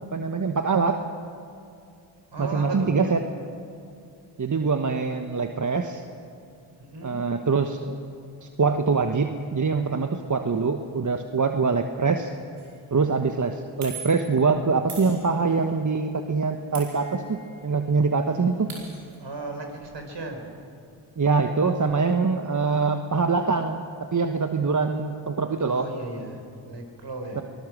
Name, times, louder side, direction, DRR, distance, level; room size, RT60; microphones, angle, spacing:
voice 1, 0.1-1.0 2.4-3.2 4.4-6.0 7.0-8.0 8.4-12.3 12.9-18.7 21.2-23.8 24.1-25.9 27.4-27.5, right 4 dB, 40° right, 6 dB, 1.3 m, -24 dB
voice 2, 2.3-3.0 6.8-7.2 19.2-20.5 25.6-27.4, right 2 dB, 60° right, 4 dB, 4.9 m, -36 dB
Sword hits - no reverb, 12.6-12.8 13.8-14.4 14.9-15.7 16.7-17.6 17.9-18.0 18.3-19.2, right 5 dB, 75° right, 5.0 m, -41 dB
24.0 x 20.0 x 6.3 m, 2.5 s
supercardioid pair, 40°, 48 cm